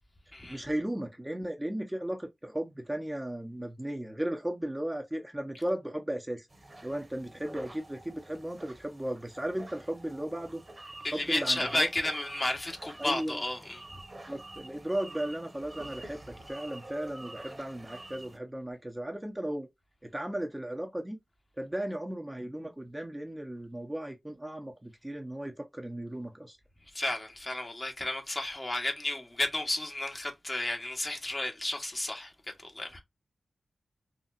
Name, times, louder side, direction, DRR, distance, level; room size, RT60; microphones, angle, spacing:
voice 1, 0.5-6.5 6.8-10.6 11.1-11.9 13.0-13.4 14.3-19.7 20.1-21.2 21.6-26.6, right 1 dB, 15° right, 0.9 m, -36 dB
sound 1, 6.5-18.4, right 2 dB, 35° right, 1.3 m, -48 dB
voice 2, 11.0-13.8 26.9-32.3 32.6-33.0, left 1 dB, 30° left, 1.2 m, -32 dB
4.1 x 2.5 x 2.5 m
cardioid pair, 55°, 0 cm